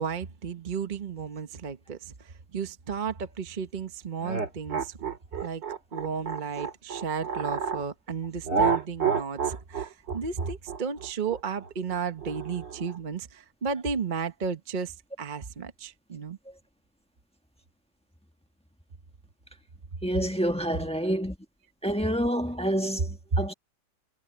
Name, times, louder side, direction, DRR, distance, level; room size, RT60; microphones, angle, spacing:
voice 1, 0.0-5.0 5.4-5.6 5.9-16.4, right 6 dB, 35° right, 0.8 m, -34 dB
sound 1, 4.2-7.8 8.5-13.0, right 5 dB, 60° right, 3.4 m, -30 dB
voice 2, 20.0-21.4 21.8-23.5, equal, 5° left, 1.2 m, -28 dB
omnidirectional pair, 2.1 m